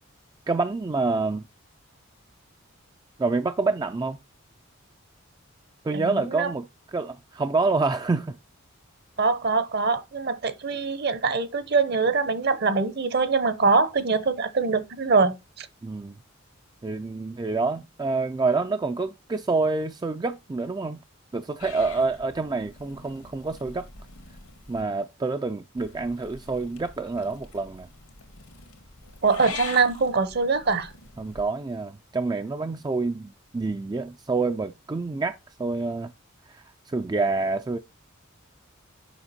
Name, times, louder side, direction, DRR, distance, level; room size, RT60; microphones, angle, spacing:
voice 1, 0.5-1.4 3.2-4.2 5.8-8.4 15.8-16.2 16.8-21.0 21.3-23.9 24.7-27.9 31.2-36.1 36.5-37.8, right 3 dB, 20° right, 0.3 m, -27 dB
voice 2, 5.9-6.5 9.2-15.7 29.2-30.9, right 4 dB, 50° right, 0.8 m, -23 dB
Purr / Meow, 21.6-24.8 25.8-31.4, left 5 dB, 90° left, 2.0 m, -44 dB
7.0 x 5.7 x 4.2 m
head